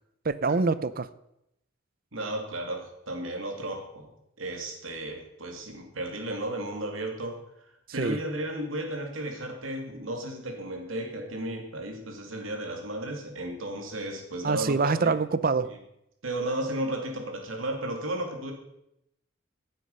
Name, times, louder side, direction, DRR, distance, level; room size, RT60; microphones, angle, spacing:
voice 1, 0.2-1.1 8.0-8.2 14.4-15.7, right 4 dB, 45° right, 15 dB, 0.6 m, -25 dB
voice 2, 2.1-4.1 4.4-7.4 7.9-15.1 15.6-15.8 16.2-18.5, right 1 dB, 85° right, 2 dB, 2.8 m, -34 dB
15.5 x 8.1 x 5.5 m, 0.82 s
head